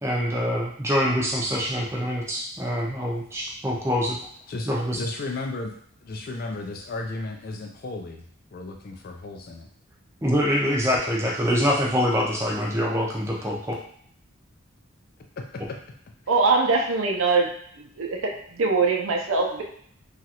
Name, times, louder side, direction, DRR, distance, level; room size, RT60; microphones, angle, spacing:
voice 1, 0.0-4.2 4.7-5.0 10.2-13.7, equal, 15° right, -3 dB, 0.5 m, -25 dB
voice 2, 4.5-8.2 8.5-9.7 13.4-13.5 15.4-15.8, left 2 dB, 45° left, 3 dB, 0.4 m, -34 dB
voice 3, 16.3-17.5 17.8-19.6, right 4 dB, 75° right, 1 dB, 0.5 m, -22 dB
2.9 x 2.4 x 2.8 m, 0.63 s
head